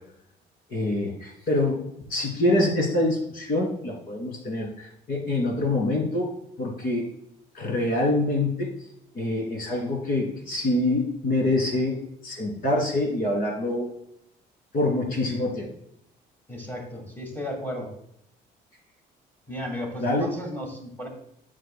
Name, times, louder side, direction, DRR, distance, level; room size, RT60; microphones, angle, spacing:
voice 1, 0.7-6.3 6.6-7.0 7.5-8.7 9.1-12.0 12.2-13.9 14.7-15.7 20.0-20.3, left 2 dB, 60° left, 1 dB, 2.6 m, -25 dB
voice 2, 16.5-17.9 19.5-21.1, equal, 10° left, 2 dB, 2.0 m, -34 dB
9.4 x 6.7 x 2.2 m, 0.75 s
cardioid pair, 110°, 17 cm